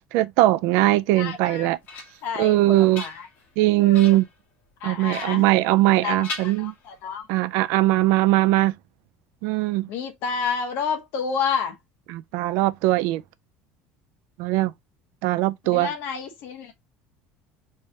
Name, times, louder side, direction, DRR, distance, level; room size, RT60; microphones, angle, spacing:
voice 1, 0.1-1.8 2.4-3.0 3.6-4.3 4.8-6.7 7.3-8.7 9.4-9.9 12.1-13.2 14.4-14.7 15.2-15.9, right 17 dB, 65° right, 0.3 m, -20 dB
voice 2, 1.1-1.7 2.2-3.3 3.8-4.2 4.8-5.4 6.0-7.3 9.9-11.8 15.6-16.7, left 6 dB, 50° left, 0.8 m, -30 dB
sound 1, 1.4-2.4 2.8-3.5 3.9-4.4 5.1-6.0 6.2-7.2, left 2 dB, 35° left, 1.5 m, -39 dB
3.4 x 3.2 x 2.7 m
cardioid pair, 170°, 5 cm